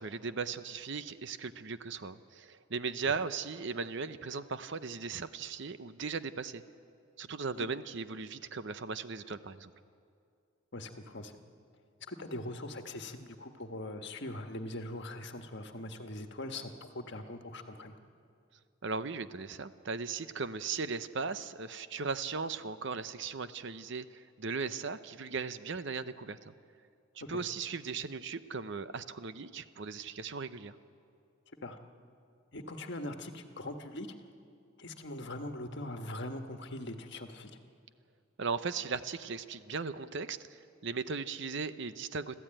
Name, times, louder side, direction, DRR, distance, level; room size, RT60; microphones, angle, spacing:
voice 1, 0.0-6.6 7.2-9.7 18.8-26.5 27.3-30.7 38.4-42.3, right 5 dB, 55° right, 12 dB, 0.7 m, -37 dB
voice 2, 10.7-11.4 12.1-17.9 27.3-27.4 31.6-31.8 32.5-34.1 34.8-37.5, left 1 dB, 55° left, 5 dB, 1.5 m, -41 dB
26.0 x 14.5 x 9.0 m, 2.4 s
head